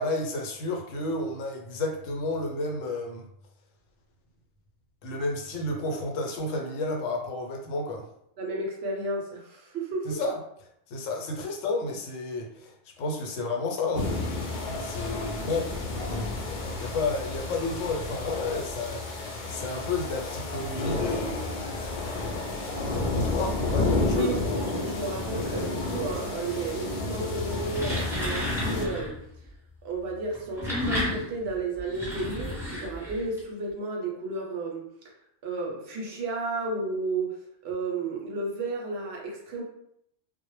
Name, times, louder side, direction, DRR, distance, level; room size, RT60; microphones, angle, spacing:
voice 1, 0.0-3.2 5.0-8.0 10.0-10.4 10.9-14.1 14.6-15.7 16.4-16.5 16.8-21.7 22.9-24.4, left 2 dB, 85° left, 2 dB, 0.9 m, -31 dB
voice 2, 8.4-10.2 24.2-29.2 29.8-34.9 35.4-37.4 37.6-39.6, right 3 dB, 65° right, -1 dB, 0.7 m, -32 dB
sound 1, 13.9-28.9, left 2 dB, 60° left, 0.5 m, -31 dB
sound 2, 27.6-29.2 30.3-33.4, left 1 dB, 5° right, 0.6 m, -32 dB
2.1 x 2.0 x 3.0 m, 0.73 s
omnidirectional pair, 1.3 m